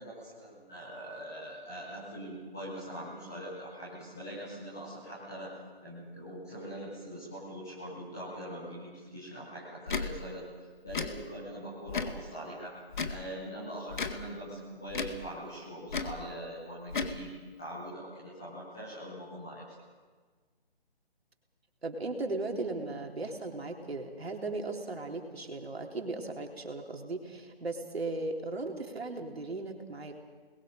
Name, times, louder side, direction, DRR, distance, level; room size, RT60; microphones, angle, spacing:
voice 1, 0.0-5.6 5.8-10.5 10.8-12.8 13.1-19.6, equal, 5° left, -9 dB, 0.5 m, -42 dB
Tick / Tick-tock, 9.9-10.1 10.9-11.1 11.9-12.2 12.9-13.2 13.9-14.2 14.9-15.2 15.9-16.2 16.9-17.2, left 4 dB, 50° left, 1.8 m, -33 dB
voice 2, 21.8-30.1, right 2 dB, 75° right, 2 dB, 3.7 m, -37 dB
29.0 x 21.0 x 5.2 m, 1.5 s
figure-of-eight pair, 160°, 31 cm